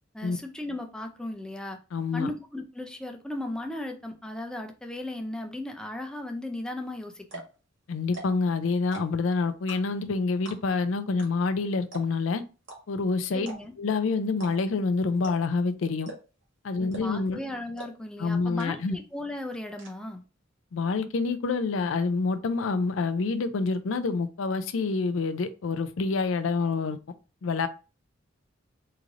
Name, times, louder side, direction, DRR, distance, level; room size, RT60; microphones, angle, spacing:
voice 1, 0.1-1.8 2.1-7.4 13.3-13.7 16.8-20.2, left 1 dB, 5° left, 0.4 m, -36 dB
voice 2, 1.9-2.3 7.9-12.4 12.9-13.5 13.8-16.1 16.6-17.4 18.2-19.0 20.7-27.0 27.4-27.7, left 4 dB, 90° left, 0.4 m, -27 dB
sound 1, 6.8-6.9 7.2-7.6 8.0-8.5 8.8-9.2 9.7-10.1 10.4-10.8 11.2-11.3 11.5-11.6 11.9-12.3 12.6-12.8 13.4-13.8 14.3-14.5 14.8-14.9 15.2-15.6 16.0-16.4 16.9-17.2 17.8-17.9 18.2-18.3 18.6-19.0 19.3-19.9, right 2 dB, 75° right, 1.7 m, -41 dB
3.7 x 3.1 x 2.5 m
head